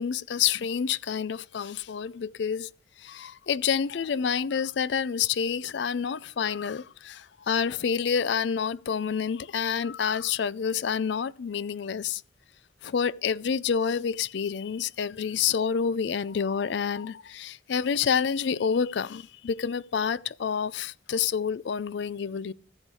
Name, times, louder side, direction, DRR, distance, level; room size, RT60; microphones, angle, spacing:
voice 1, 0.0-2.7 3.0-12.2 12.8-22.5, left 7 dB, 70° left, 0.4 m, -28 dB
15.0 x 7.2 x 4.7 m
head